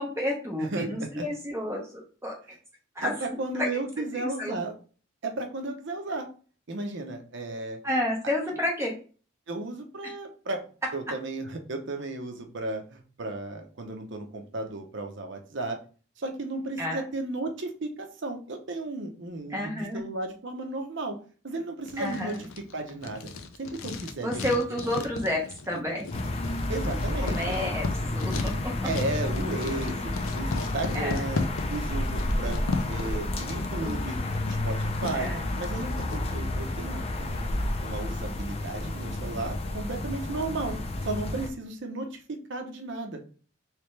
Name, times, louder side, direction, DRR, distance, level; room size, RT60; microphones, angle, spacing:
voice 1, 0.0-2.4 2.9-3.1 3.6-3.7 4.1-4.5 7.8-9.0 10.0-10.1 16.8-17.0 19.5-20.0 22.0-22.4 24.2-26.1 27.2-28.7 30.9-31.2 33.5-34.0 35.1-35.4, left 1 dB, 15° right, -1 dB, 0.7 m, -30 dB
voice 2, 0.6-1.2 3.0-4.7 5.2-6.3 6.7-7.8 9.5-10.6 10.9-15.8 16.2-21.2 21.4-22.4 22.7-23.3 23.6-24.3 25.0-25.1 26.7-27.7 28.8-31.4 31.7-34.2 34.5-35.3 35.6-43.2, right 2 dB, 60° right, 4 dB, 0.7 m, -34 dB
Writing, 21.8-36.2, left 3 dB, 90° left, 0.5 m, -36 dB
sound 1, 26.1-41.5, left 1 dB, 30° left, 0.5 m, -31 dB
3.3 x 3.2 x 3.2 m, 0.39 s
head